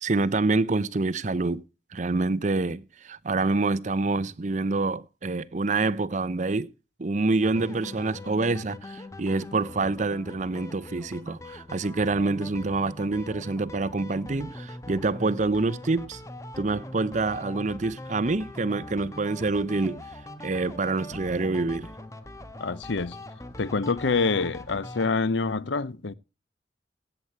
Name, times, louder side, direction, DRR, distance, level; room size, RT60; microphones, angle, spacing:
voice 1, 0.0-1.6 1.9-6.7 7.0-16.2 16.6-20.0 20.4-21.9, right 3 dB, 40° right, 0.6 m, -26 dB
sound 1, 7.4-25.1, left 1 dB, 15° left, 1.2 m, -42 dB
voice 2, 22.6-23.2 23.6-26.1, left 4 dB, 80° left, 0.7 m, -26 dB
16.0 x 8.0 x 4.5 m
head